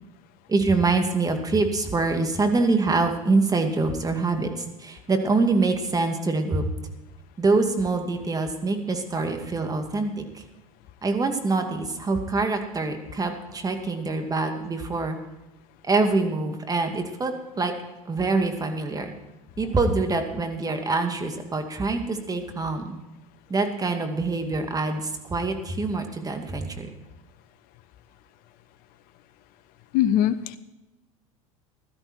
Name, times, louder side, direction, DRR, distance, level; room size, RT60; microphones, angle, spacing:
voice 1, 0.5-6.6 7.4-10.4 11.0-15.2 15.8-17.7 18.1-19.1 19.6-23.0 23.5-26.9, right 3 dB, 20° right, 5 dB, 2.3 m, -25 dB
voice 2, 29.9-30.6, left 11 dB, 55° left, 14 dB, 1.0 m, -21 dB
16.0 x 12.5 x 4.5 m, 1.0 s
hypercardioid pair, 80°, 18 cm